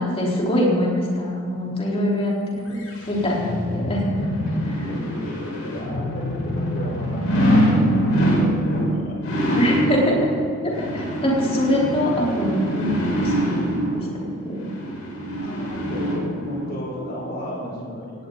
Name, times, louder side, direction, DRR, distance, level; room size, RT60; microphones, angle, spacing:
voice 1, 0.0-2.8 3.1-4.2 4.6-4.9 9.6-10.2 10.6-14.1 14.4-14.7, left 1 dB, 30° left, -4 dB, 4.3 m, -23 dB
sound 1, 2.8-16.7 17.1-17.2, equal, 70° left, 5.0 m, -24 dB
voice 2, 5.2-7.3 7.7-7.9 8.2-9.2 9.5-9.6 15.4-18.3, equal, 45° left, -3 dB, 5.1 m, -34 dB
18.5 x 17.5 x 4.1 m, 2.4 s
head